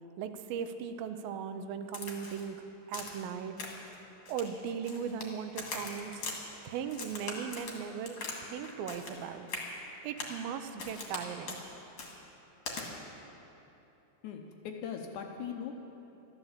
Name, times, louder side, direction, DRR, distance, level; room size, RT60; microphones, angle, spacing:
voice 1, 0.2-3.6 4.3-9.5 10.0-11.6, right 7 dB, 85° right, 9 dB, 2.5 m, -38 dB
Crack, 1.9-2.5 2.9-3.2 3.6-3.9 4.3-5.3 5.6-6.4 6.9-8.4 8.6-9.2 9.5-9.7 10.2-10.4 10.8-11.2 11.5-11.6 12.0-12.1 12.7-12.8, left 3 dB, 45° left, 2.3 m, -41 dB
voice 2, 14.2-15.7, left 7 dB, 70° left, 3 dB, 2.0 m, -40 dB
14.0 x 11.5 x 7.3 m, 2.9 s
omnidirectional pair, 4.1 m